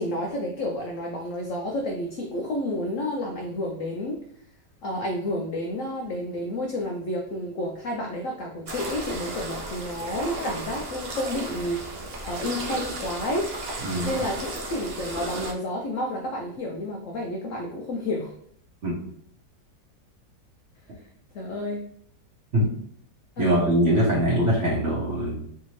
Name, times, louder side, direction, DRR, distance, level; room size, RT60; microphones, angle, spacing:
voice 1, 0.0-4.2 4.8-13.5 14.0-18.3 21.3-21.8 23.4-23.5, left 1 dB, 80° left, 0 dB, 0.7 m, -30 dB
sound 1, 8.7-15.5, right 1 dB, 80° right, 0.5 m, -34 dB
voice 2, 23.4-25.5, equal, 50° right, -5 dB, 1.1 m, -22 dB
3.3 x 2.7 x 3.0 m, 0.65 s
omnidirectional pair, 1.9 m